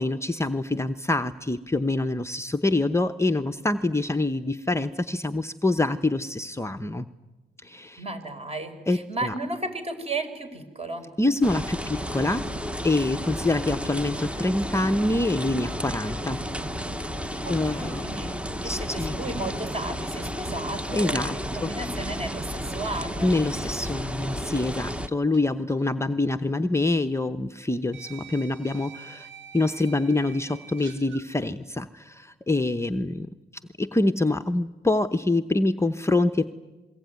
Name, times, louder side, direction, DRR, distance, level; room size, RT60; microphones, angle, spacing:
voice 1, 0.0-7.1 7.6-8.0 8.9-9.3 11.2-12.5 12.8-16.4 17.5-18.2 18.6-19.1 20.9-21.7 23.2-29.3 29.5-33.3 33.8-36.5, left 2 dB, 15° left, 8 dB, 0.8 m, -25 dB
voice 2, 8.0-11.1 17.4-18.3 18.6-23.3, right 2 dB, 30° right, 8 dB, 4.7 m, -34 dB
sound 1, 11.4-25.1, equal, 5° right, 1.1 m, -32 dB
sound 2, 22.7-25.4 25.7-25.9 27.0-27.1 27.9-31.3, right 7 dB, 70° right, 3.4 m, -47 dB
27.0 x 22.0 x 9.4 m, 1.2 s
cardioid pair, 90°, 20 cm